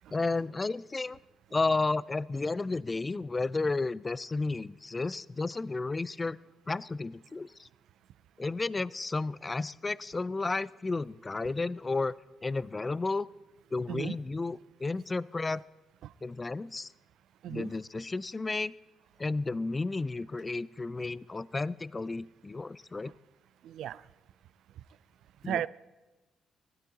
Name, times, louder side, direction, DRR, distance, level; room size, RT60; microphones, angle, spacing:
voice 1, 0.1-1.2 1.5-6.4 6.7-7.7 8.4-12.1 12.4-13.3 13.7-15.6 16.2-16.9 17.5-18.7 19.2-23.1 25.4-25.6, left 3 dB, 25° left, 0.3 m, -32 dB
voice 2, 23.6-24.0 25.5-25.7, right 11 dB, 80° right, 0.3 m, -35 dB
15.5 x 13.0 x 4.0 m
cardioid pair, 90°, 0 cm